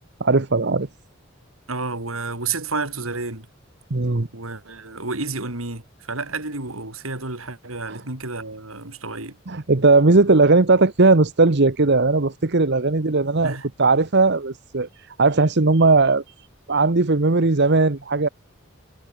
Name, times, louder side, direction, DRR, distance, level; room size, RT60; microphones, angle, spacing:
voice 1, 0.2-0.9 3.9-4.3 7.9-8.0 9.5-14.9 15.2-16.2 16.7-18.3, right 3 dB, 55° right, 1.1 m, -18 dB
voice 2, 1.7-3.5 4.3-9.4 13.4-13.7, right 3 dB, 90° right, 4.7 m, -30 dB
head